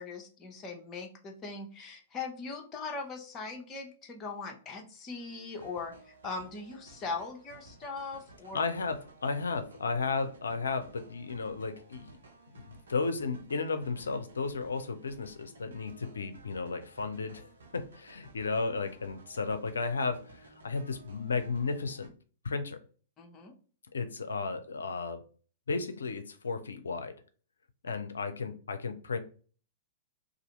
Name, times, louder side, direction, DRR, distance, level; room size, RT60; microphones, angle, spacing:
voice 1, 0.0-5.9 6.2-8.6 23.2-23.5, left 4 dB, 25° left, 0.8 m, -40 dB
sound 1, 5.1-22.1, right 2 dB, 75° right, 0.7 m, -55 dB
voice 2, 8.5-12.1 12.5-22.1 22.4-22.8 23.9-25.2 25.7-27.1 27.8-29.2, left 4 dB, 80° left, 0.5 m, -34 dB
2.6 x 2.5 x 4.2 m
figure-of-eight pair, 110°, 0 cm